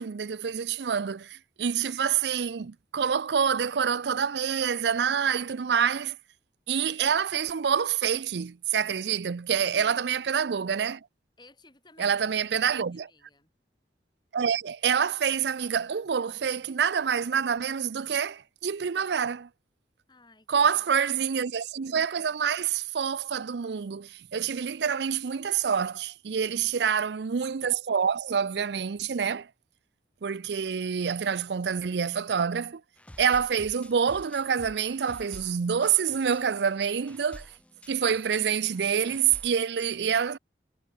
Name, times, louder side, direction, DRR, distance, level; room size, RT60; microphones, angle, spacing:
voice 1, 0.0-6.2 6.7-11.0 12.0-13.1 14.3-19.5 20.5-29.5 30.2-32.8 33.2-37.5 37.9-40.4, right 7 dB, 75° right, 0.5 m, -27 dB
voice 2, 9.7-10.1 11.4-13.5 20.1-21.0 26.3-26.9, left 2 dB, 25° left, 5.6 m, -57 dB
sound 1, 33.0-39.5, left 1 dB, 5° left, 1.0 m, -50 dB
head